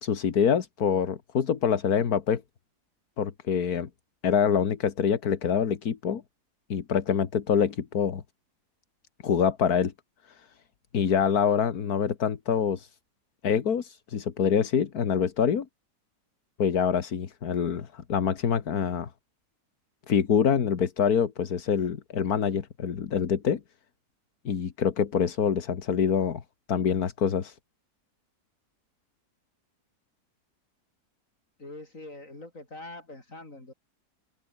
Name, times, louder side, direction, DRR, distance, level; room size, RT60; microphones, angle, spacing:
voice 1, 0.0-2.4 3.2-3.9 4.2-6.2 6.7-8.2 9.2-9.9 10.3-10.5 10.9-12.9 13.4-15.7 16.6-19.1 20.1-23.6 24.5-26.4 26.7-27.6, left 7 dB, 70° left, 2.0 m, -25 dB
voice 2, 31.6-33.7, left 2 dB, 55° left, 6.6 m, -43 dB
open air
omnidirectional pair, 1.7 m